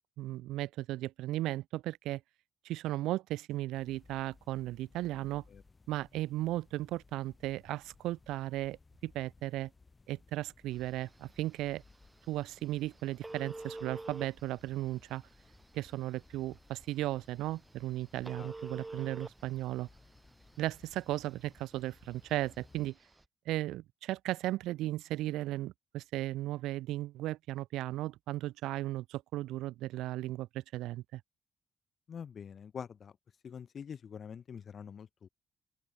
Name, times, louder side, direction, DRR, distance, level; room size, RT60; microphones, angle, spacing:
voice 1, 0.0-2.2 2.6-5.4 5.9-9.7 10.1-11.8 12.3-15.2 15.7-19.9 20.6-23.0 23.4-31.2, right 16 dB, 90° right, 1.4 m, -36 dB
sound 1, 3.7-22.9, left 3 dB, 25° left, 4.8 m, -62 dB
Telephone, 10.7-23.2, right 2 dB, 15° right, 4.1 m, -50 dB
voice 2, 32.1-33.1 33.4-35.3, left 7 dB, 50° left, 1.1 m, -45 dB
open air
cardioid pair, 85°, 0 cm